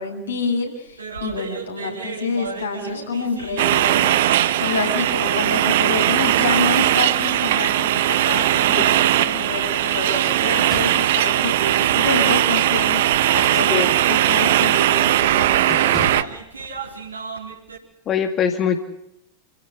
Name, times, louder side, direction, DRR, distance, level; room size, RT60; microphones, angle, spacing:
voice 1, 0.0-4.1 4.6-16.3, left 4 dB, 70° left, 1 dB, 7.6 m, -28 dB
sound 1, 0.9-17.8, right 5 dB, 75° right, 4.4 m, -35 dB
sound 2, 3.6-16.2, right 13 dB, 55° right, 1.0 m, -19 dB
sound 3, 7.0-7.8 8.2-8.3 9.8-11.1 13.1-14.1 14.5-14.8 15.1-15.3 15.7-16.4, left 2 dB, 10° left, 3.7 m, -38 dB
voice 2, 18.1-18.8, left 8 dB, 30° left, 6 dB, 2.0 m, -22 dB
28.5 x 16.5 x 8.2 m, 0.82 s
figure-of-eight pair, 90°, 0 cm